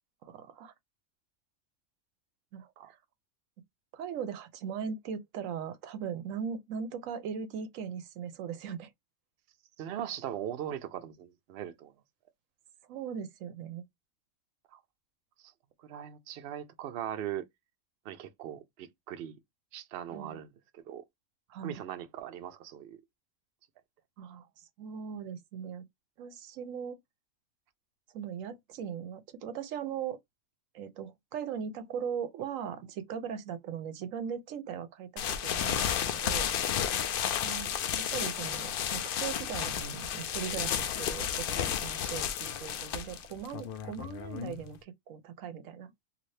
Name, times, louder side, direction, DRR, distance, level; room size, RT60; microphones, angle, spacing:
voice 1, 0.2-0.7 2.5-2.7 3.9-8.9 12.9-13.8 20.1-20.4 21.5-21.8 24.2-25.8 26.2-27.0 28.1-30.2 30.7-36.5 37.4-37.7 38.0-45.9, right 7 dB, 80° right, 1.0 m, -39 dB
voice 2, 9.8-11.9 14.7-14.8 15.8-17.4 18.0-19.4 19.7-20.5 20.7-21.0 21.6-23.0, right 10 dB, 60° right, 0.7 m, -39 dB
sound 1, 35.2-44.8, left 9 dB, 65° left, 0.5 m, -32 dB
2.7 x 2.6 x 3.1 m
omnidirectional pair, 1.4 m